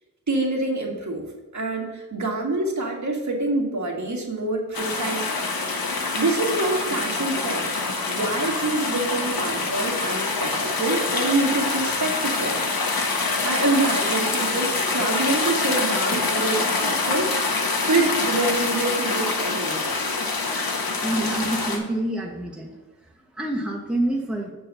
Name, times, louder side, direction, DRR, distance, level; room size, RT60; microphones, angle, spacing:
voice 1, 0.3-1.2 1.5-5.4 6.1-7.7 8.1-12.6 13.4-17.4 17.9-20.0, right 2 dB, 50° right, 0 dB, 1.8 m, -26 dB
sound 1, 4.7-21.8, left 3 dB, 80° left, 1.2 m, -25 dB
voice 2, 21.0-22.8 23.1-24.5, right 1 dB, 5° right, -1 dB, 1.1 m, -27 dB
7.4 x 4.5 x 6.8 m, 1.2 s
wide cardioid pair, 100°, 35 cm